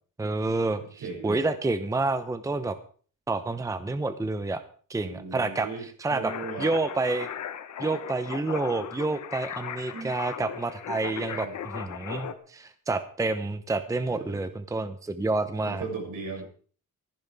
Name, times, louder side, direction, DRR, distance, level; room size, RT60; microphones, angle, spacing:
voice 1, 0.2-2.8 3.3-4.6 4.9-6.3 6.6-7.3 7.8-11.5 11.7-15.8, right 3 dB, 10° right, 10 dB, 0.8 m, -29 dB
voice 2, 1.0-1.4 4.9-6.7 9.9-10.1 11.3-11.5 14.1-14.6 15.6-16.4, right 4 dB, 80° right, 0 dB, 6.9 m, -37 dB
sound 1, 6.3-12.3, left 9 dB, 60° left, 1.2 m, -37 dB
18.0 x 14.5 x 3.5 m, 0.43 s
cardioid pair, 160°, 32 cm